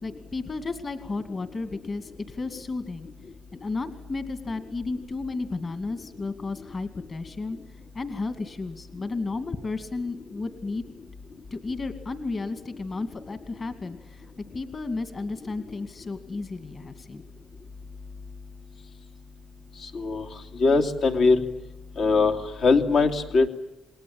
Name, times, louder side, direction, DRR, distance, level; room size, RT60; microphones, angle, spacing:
voice 1, 0.0-3.1 3.5-7.6 7.9-10.8 11.5-14.3 14.5-17.2, left 3 dB, 35° left, 10 dB, 2.3 m, -33 dB
voice 2, 19.8-20.3 20.6-21.4 22.0-23.5, left 4 dB, 70° left, 4 dB, 2.7 m, -21 dB
28.5 x 21.0 x 8.8 m, 0.97 s
cardioid pair, 105°, 0 cm